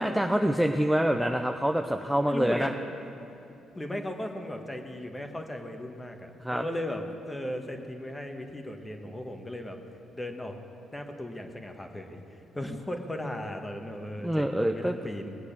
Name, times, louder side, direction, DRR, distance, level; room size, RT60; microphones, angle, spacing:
voice 1, 0.0-2.7 6.4-6.6 14.2-14.9, equal, 5° right, 4 dB, 0.6 m, -26 dB
voice 2, 2.2-2.7 3.7-9.8 10.1-10.5 10.9-12.2 12.5-15.4, left 1 dB, 15° left, 4 dB, 1.5 m, -36 dB
20.5 x 8.2 x 6.8 m, 2.7 s
cardioid pair, 90°, 0 cm